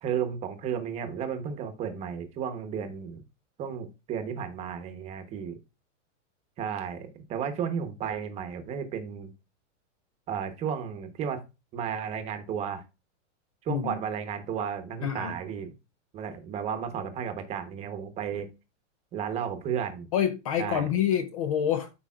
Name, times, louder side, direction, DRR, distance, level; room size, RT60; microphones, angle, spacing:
voice 1, 0.0-3.2 3.6-5.6 6.6-9.3 10.3-11.4 11.7-12.8 13.6-15.7 16.1-18.5 19.1-20.1 20.6-20.9, right 7 dB, 15° right, 1.0 m, -33 dB
voice 2, 13.7-14.0 15.0-15.4 20.1-21.9, left 9 dB, 30° left, 0.5 m, -27 dB
13.0 x 5.0 x 2.4 m
supercardioid pair, 170°, 38 cm